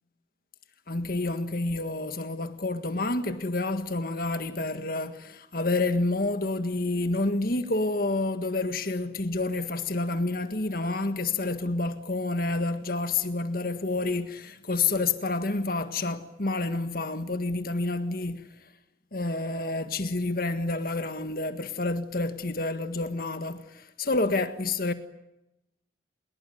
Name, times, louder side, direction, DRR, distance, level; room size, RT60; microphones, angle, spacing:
voice 1, 0.9-18.7 19.1-24.9, left 2 dB, 50° left, 1.7 m, -29 dB
29.5 x 21.5 x 9.3 m
head